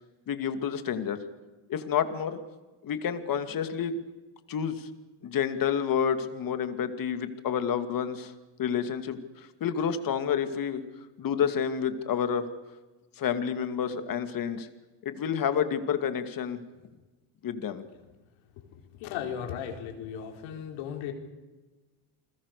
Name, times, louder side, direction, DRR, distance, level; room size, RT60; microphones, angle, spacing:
voice 1, 0.3-1.2 1.7-2.4 2.8-4.0 4.5-4.9 5.2-8.3 8.6-10.8 11.2-12.4 13.2-14.7 15.0-16.6 17.4-17.8, left 8 dB, 45° left, 9 dB, 2.4 m, -29 dB
voice 2, 18.7-21.1, left 8 dB, 85° left, 3 dB, 4.7 m, -36 dB
29.5 x 21.0 x 6.8 m, 1.2 s
cardioid pair, 125°, 46 cm